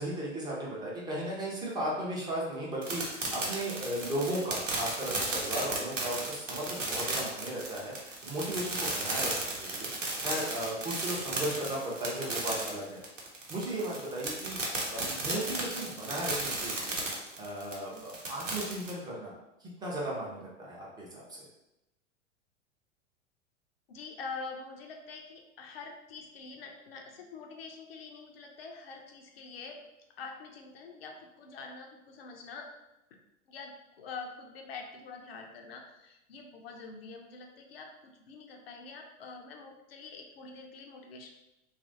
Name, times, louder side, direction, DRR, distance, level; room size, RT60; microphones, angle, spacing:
voice 1, 0.0-13.0 13.5-14.6 14.9-17.0 17.4-19.3 19.6-21.2, right 1 dB, 10° right, -5 dB, 0.5 m, -36 dB
sound 1, 2.8-18.9, right 2 dB, 80° right, 0.9 m, -34 dB
voice 2, 23.9-29.8 30.2-32.7 33.5-41.3, left 4 dB, 55° left, 3 dB, 0.5 m, -45 dB
2.9 x 2.4 x 2.6 m, 0.91 s
figure-of-eight pair, 95°, 37 cm